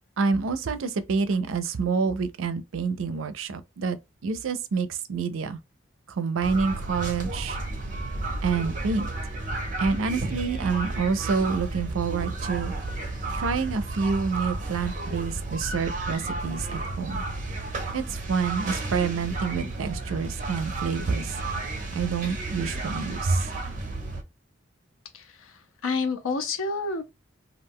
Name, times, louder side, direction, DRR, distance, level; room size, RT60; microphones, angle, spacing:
voice 1, 0.2-4.0 4.2-5.6 6.1-7.6 8.4-9.1 9.8-12.7 13.3-17.2 17.9-21.4 21.9-23.7, right 5 dB, 80° right, 0.4 m, -28 dB
sound 1, 6.4-24.2, right 2 dB, 40° right, 0.6 m, -32 dB
voice 2, 25.1-25.5 25.8-27.0, left 4 dB, 85° left, 0.6 m, -28 dB
2.3 x 2.2 x 3.5 m
head